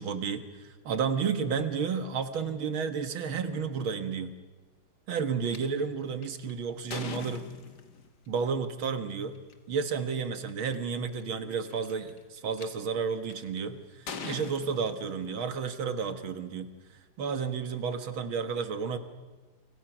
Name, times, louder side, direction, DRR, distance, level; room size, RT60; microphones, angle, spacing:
voice 1, 0.0-4.3 5.1-7.4 8.3-9.4 9.7-16.7 17.2-19.0, right 6 dB, 85° right, 9 dB, 2.3 m, -32 dB
sound 1, 5.5-5.6 6.2-8.1 9.4-9.5 10.2-10.3 10.5-10.9 11.7-12.7 13.3-13.6 14.1-15.5, left 6 dB, 55° left, 2.1 m, -41 dB
29.5 x 24.5 x 6.1 m, 1.2 s
omnidirectional pair, 2.2 m